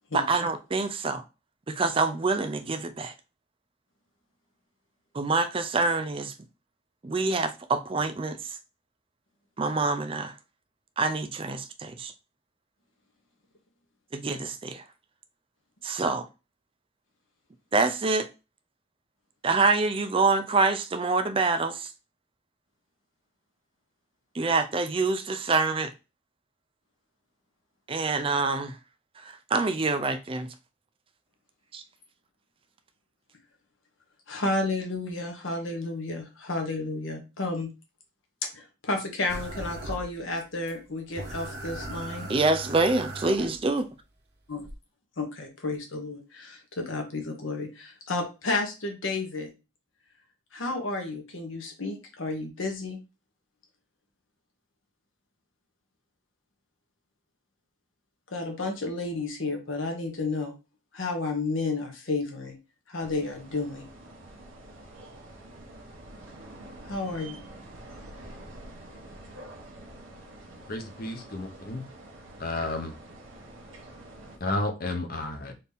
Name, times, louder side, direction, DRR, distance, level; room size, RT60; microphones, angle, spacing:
voice 1, 0.1-1.2 1.7-3.1 5.1-6.3 7.0-8.6 9.6-10.3 11.0-12.1 14.1-14.8 15.8-16.3 17.7-18.3 19.4-21.9 24.3-25.9 27.9-28.8 29.2-30.5 31.7-31.8 42.3-43.8, right 3 dB, 25° right, 0.4 m, -26 dB
voice 2, 34.3-37.7 38.5-42.3 44.5-44.7 45.2-49.5 50.5-53.0 58.3-60.6 60.9-62.6 62.9-63.9 66.8-67.4, left 3 dB, 80° left, 1.2 m, -31 dB
sound 1, 39.3-40.4 40.7-40.8 41.1-43.8 44.6-44.7, right 1 dB, 55° right, 0.9 m, -38 dB
sound 2, 63.0-74.4, right 1 dB, 90° right, 1.1 m, -47 dB
voice 3, 70.7-71.8 72.4-72.9 74.4-75.5, left 2 dB, 45° left, 0.8 m, -31 dB
4.2 x 2.7 x 3.5 m
head